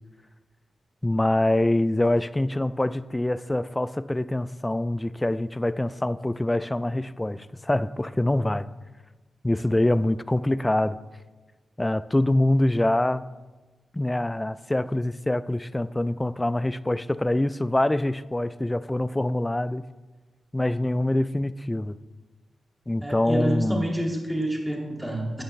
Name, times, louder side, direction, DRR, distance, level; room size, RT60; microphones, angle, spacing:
voice 1, 1.0-8.7 9.4-11.0 11.8-13.2 13.9-19.8 20.5-22.0 22.9-23.9, left 1 dB, 15° left, 0.4 m, -25 dB
voice 2, 23.0-25.4, right 1 dB, 5° right, 2.4 m, -28 dB
13.0 x 8.6 x 3.3 m
cardioid pair, 70°, 0 cm